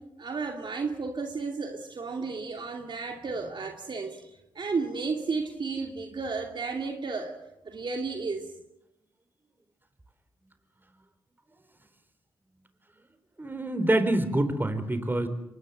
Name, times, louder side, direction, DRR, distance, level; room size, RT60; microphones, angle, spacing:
voice 1, 0.0-7.3 7.6-8.5, right 4 dB, 55° right, 3 dB, 2.6 m, -33 dB
voice 2, 13.4-15.3, right 1 dB, 20° right, 10 dB, 4.2 m, -26 dB
24.5 x 20.5 x 7.7 m, 0.86 s
supercardioid pair, 50°, 10 cm